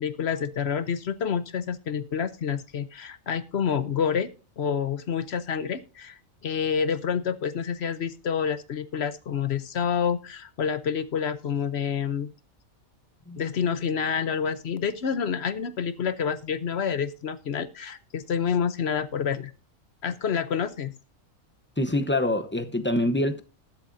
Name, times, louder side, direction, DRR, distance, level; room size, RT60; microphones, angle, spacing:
voice 1, 0.0-4.3 4.6-12.3 13.4-19.5 20.0-20.9, left 7 dB, 55° left, 0.9 m, -28 dB
voice 2, 21.8-23.4, left 1 dB, 10° left, 0.6 m, -25 dB
20.0 x 7.7 x 2.6 m
omnidirectional pair, 1.4 m